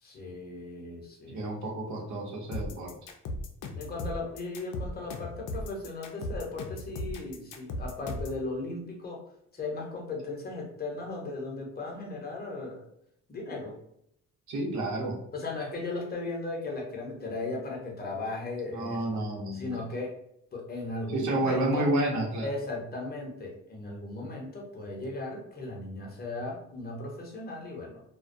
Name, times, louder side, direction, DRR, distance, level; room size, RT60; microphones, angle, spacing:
voice 1, 0.0-1.5 3.7-9.2 9.5-12.8 13.3-13.8 15.3-19.0 19.6-20.2 20.5-21.9 22.4-28.0, left 2 dB, 30° left, -1 dB, 0.8 m, -37 dB
voice 2, 1.3-3.0 14.5-15.2 18.7-19.8 21.1-22.5, right 1 dB, 70° right, -1 dB, 0.8 m, -30 dB
sound 1, 2.5-8.4, left 1 dB, 85° left, 0.5 m, -36 dB
2.2 x 2.1 x 2.5 m, 0.74 s
cardioid pair, 90°, 30 cm